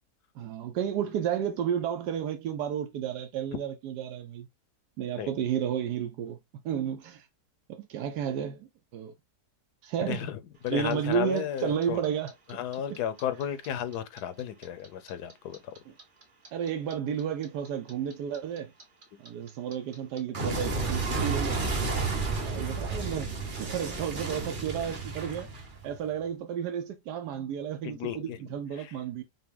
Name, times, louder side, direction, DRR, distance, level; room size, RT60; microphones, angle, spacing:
voice 1, 0.4-4.5 5.0-6.4 6.6-7.3 7.7-9.1 9.8-10.3 10.7-12.3 12.9-13.0 16.5-18.7 19.2-21.6 22.4-23.3 23.6-25.5 25.8-29.2, right 9 dB, 85° right, 1.2 m, -32 dB
voice 2, 10.1-10.4 10.6-12.0 12.5-15.7 19.1-19.2 27.8-28.4 28.8-28.9, left 10 dB, 80° left, 1.2 m, -33 dB
Clock, 10.7-13.7 13.9-16.9 17.2-26.0, right 3 dB, 35° right, 1.0 m, -32 dB
5.9 x 2.2 x 3.6 m
omnidirectional pair, 1.7 m